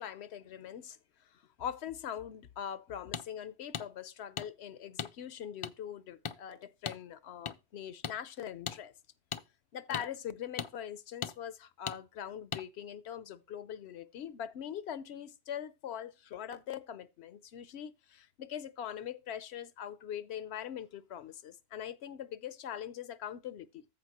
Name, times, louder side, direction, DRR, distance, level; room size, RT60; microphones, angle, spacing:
voice 1, 0.0-8.9 9.7-23.9, left 9 dB, 80° left, 0.9 m, -42 dB
sound 1, 3.1-3.3 3.7-3.9 4.4-4.5 5.0-5.1 5.6-5.7 6.2-6.4 6.9-7.0 7.5-7.6 8.0-8.2 8.7-8.8 9.3-9.4 9.9-10.1 10.6-10.7 11.2-11.3 11.9-12.0 12.5-12.6, left 7 dB, 50° left, 0.4 m, -37 dB
14.0 x 5.0 x 2.9 m
omnidirectional pair, 1.1 m